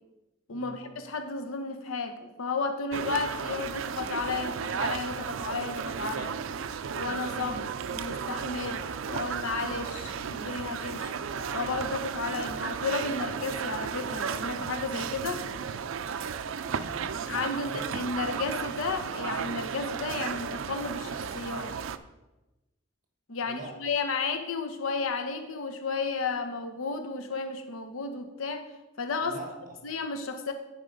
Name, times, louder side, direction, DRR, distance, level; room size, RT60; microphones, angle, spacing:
voice 1, 0.5-6.4 6.9-11.1 11.5-15.5 17.3-21.8 23.3-28.7 29.0-29.4 29.8-30.5, left 4 dB, 85° left, 7 dB, 0.8 m, -33 dB
sound 1, 2.9-22.0, right 6 dB, 70° right, 0.4 m, -34 dB
Bowed string instrument, 9.6-14.6, right 3 dB, 30° left, 0.6 m, -50 dB
voice 2, 16.6-17.9 23.4-23.8 29.2-29.9, right 2 dB, 40° right, 2 dB, 1.3 m, -43 dB
10.0 x 4.6 x 5.1 m, 1.0 s
head